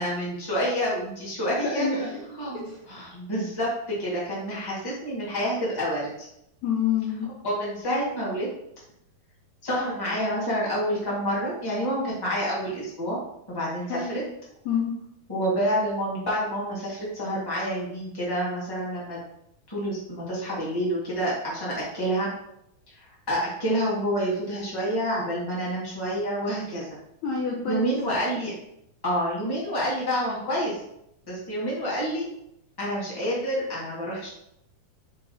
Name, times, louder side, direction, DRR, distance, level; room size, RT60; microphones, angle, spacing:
voice 1, 0.0-1.9 2.4-3.7 4.0-6.3 7.4-8.5 9.6-13.2 13.5-14.2 15.3-19.2 19.7-22.3 22.9-26.9 27.7-28.5 29.0-30.8 31.3-32.2 32.8-34.3, equal, 10° left, -7 dB, 1.6 m, -28 dB
voice 2, 1.6-2.2 2.7-2.8 6.6-7.3 13.9-14.1 14.7-14.9 27.2-27.9, left 6 dB, 70° left, -3 dB, 1.8 m, -27 dB
5.6 x 4.3 x 4.4 m, 0.78 s
omnidirectional pair, 4.0 m